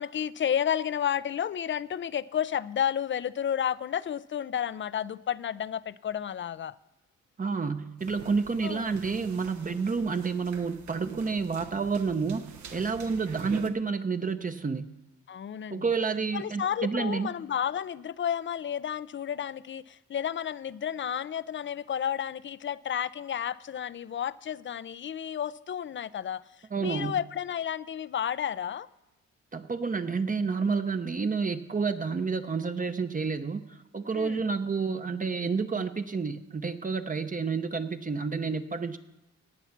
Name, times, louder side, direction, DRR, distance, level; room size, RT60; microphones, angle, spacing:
voice 1, 0.0-6.8 8.6-9.0 15.3-15.9 16.3-28.9 34.1-34.4, left 9 dB, 40° left, 18 dB, 0.5 m, -32 dB
voice 2, 7.4-14.9 15.7-17.3 26.7-27.2 29.5-39.0, right 5 dB, 30° right, 8 dB, 0.8 m, -30 dB
sound 1, 8.0-13.7, right 7 dB, 75° right, 1.2 m, -45 dB
17.5 x 7.1 x 5.9 m, 0.97 s
cardioid pair, 70°, 29 cm